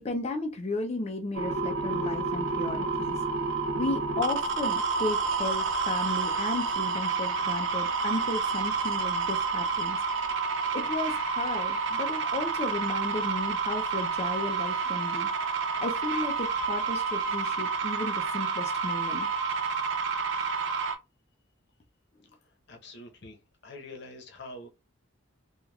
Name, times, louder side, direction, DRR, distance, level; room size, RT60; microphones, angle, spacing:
voice 1, 0.0-3.2 3.7-10.0 10.7-15.3 15.8-19.3, left 2 dB, 30° left, 0.4 m, -34 dB
sound 1, 1.3-20.9, right 5 dB, 60° right, 0.5 m, -29 dB
voice 2, 22.7-23.4 23.6-24.7, left 2 dB, 55° left, 0.8 m, -44 dB
3.3 x 2.3 x 2.3 m
head